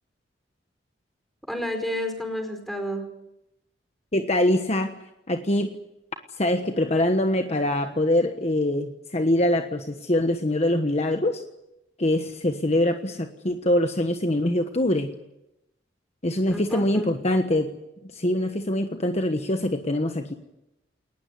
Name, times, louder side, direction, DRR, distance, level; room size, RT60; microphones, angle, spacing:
voice 1, 1.5-3.1 16.5-17.1, equal, ahead, 5 dB, 4.9 m, -31 dB
voice 2, 4.1-4.9 5.3-5.7 6.4-11.4 12.0-15.1 16.2-17.7 18.1-20.3, left 1 dB, 35° left, 6 dB, 1.3 m, -24 dB
21.0 x 19.5 x 9.6 m, 0.89 s
head